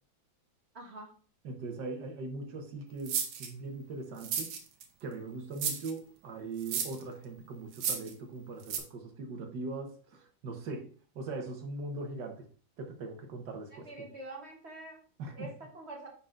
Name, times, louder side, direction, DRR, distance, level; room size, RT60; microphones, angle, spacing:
voice 1, 0.7-1.1 13.8-15.0 15.3-16.1, right 2 dB, 40° right, 0 dB, 1.3 m, -45 dB
voice 2, 1.4-4.5 5.0-12.5 12.8-13.9 15.2-15.5, right 3 dB, 65° right, 3 dB, 1.7 m, -40 dB
sound 1, 3.1-3.5 4.2-4.9 5.6-5.9 6.6-7.0 7.7-8.1 8.7-8.8, right 7 dB, 85° right, 1.7 m, -33 dB
10.0 x 4.0 x 2.5 m, 0.42 s
omnidirectional pair, 2.1 m